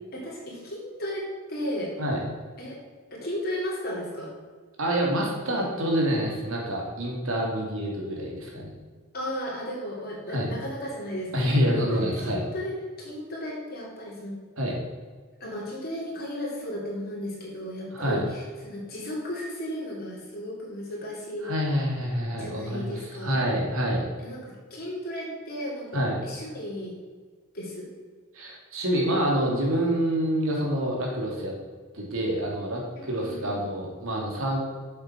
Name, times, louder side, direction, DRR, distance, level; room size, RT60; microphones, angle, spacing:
voice 1, 0.1-1.9 2.6-2.8 3.1-4.3 9.1-11.8 12.2-14.3 15.4-21.5 22.4-23.4 24.2-26.9 27.5-27.9 32.9-33.6, equal, 45° left, -3 dB, 3.4 m, -35 dB
voice 2, 4.8-8.7 10.3-10.5 11.3-12.4 14.6-14.8 17.9-18.2 21.4-24.0 25.9-26.1 28.3-31.5 31.9-34.7, equal, 75° right, -2 dB, 2.8 m, -27 dB
7.5 x 7.5 x 6.1 m, 1.5 s
head